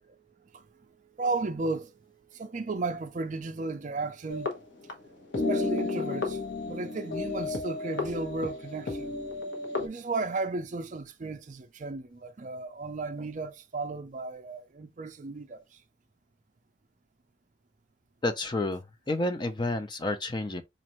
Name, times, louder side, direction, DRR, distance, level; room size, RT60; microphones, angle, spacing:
voice 1, 1.2-1.9 2.3-4.5 5.5-6.4 6.7-9.1 9.8-15.6, right 3 dB, 40° right, 0.4 m, -34 dB
sound 1, 4.3-5.1 5.3-9.9, left 3 dB, 75° left, 1.1 m, -32 dB
voice 2, 18.2-20.6, left 2 dB, 25° left, 0.4 m, -30 dB
4.2 x 2.6 x 3.0 m
head